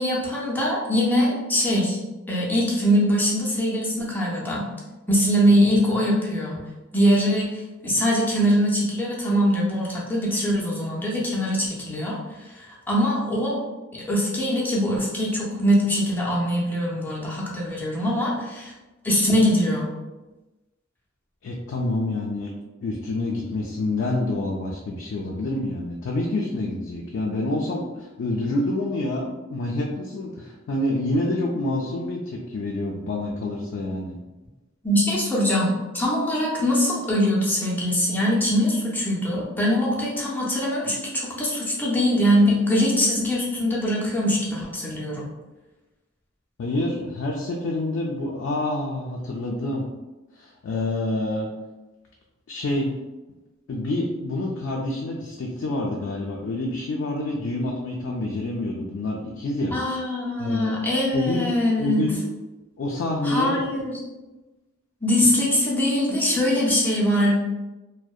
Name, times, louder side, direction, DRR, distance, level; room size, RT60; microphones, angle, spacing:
voice 1, 0.0-2.0 2.3-4.7 5.1-6.6 6.9-13.6 13.9-18.7 19.0-19.9 34.8-45.3 59.7-62.1 63.2-63.9 65.0-67.4, equal, 10° left, -5 dB, 0.5 m, -22 dB
voice 2, 21.4-22.5 22.8-34.2 46.6-49.8 50.4-51.5 52.5-52.9 53.7-59.8 60.4-60.7 61.1-61.5 61.8-62.2 62.8-63.6, left 2 dB, 60° left, -1 dB, 0.3 m, -27 dB
2.6 x 2.1 x 2.3 m, 1.1 s
head